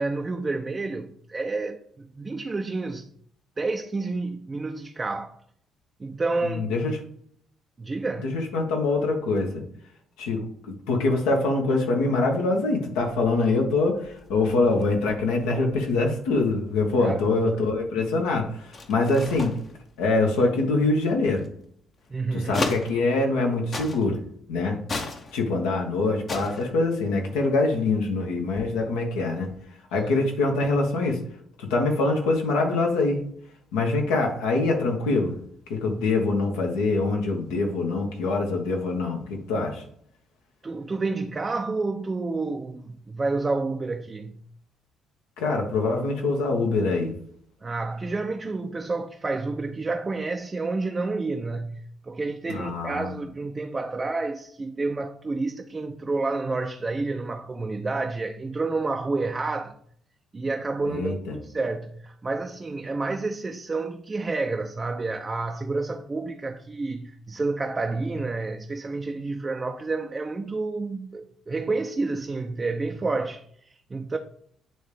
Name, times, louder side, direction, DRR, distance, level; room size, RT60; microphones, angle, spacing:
voice 1, 0.0-3.1 3.6-5.4 6.0-6.7 7.8-8.4 17.0-17.3 22.1-22.7 30.0-30.2 40.6-44.4 47.6-59.8 60.3-74.2, right 3 dB, 30° right, 0.6 m, -29 dB
voice 2, 6.4-7.0 8.2-9.6 10.2-19.5 20.0-21.4 22.3-24.2 24.5-24.8 25.3-29.5 29.9-31.2 31.6-33.2 33.7-35.4 35.7-39.8 45.4-47.1 52.5-53.2 60.9-61.4, left 3 dB, 75° left, 1.3 m, -24 dB
sound 1, 12.9-23.5 23.7-24.3 24.8-25.9 26.2-28.0 28.3-29.6, left 3 dB, 45° left, 1.0 m, -37 dB
9.1 x 3.6 x 3.4 m
hypercardioid pair, 50°, 0 cm